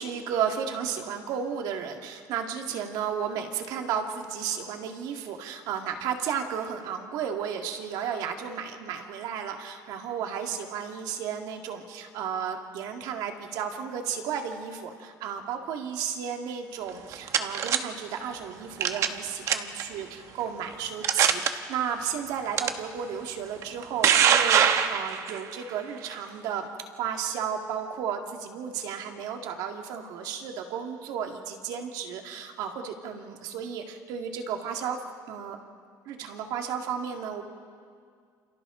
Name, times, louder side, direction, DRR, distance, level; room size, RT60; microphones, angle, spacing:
voice 1, 0.0-26.7 26.9-35.0 35.3-35.6 36.1-37.4, right 7 dB, 70° right, 3 dB, 2.2 m, -33 dB
sound 1, 16.9-17.8 18.8-19.2 19.5-19.8 20.5-20.6 21.0-21.5 22.6-22.7 23.6-25.4, right 8 dB, 45° right, 1.0 m, -22 dB
29.0 x 28.0 x 3.9 m, 2.1 s
cardioid pair, 165°, 7 cm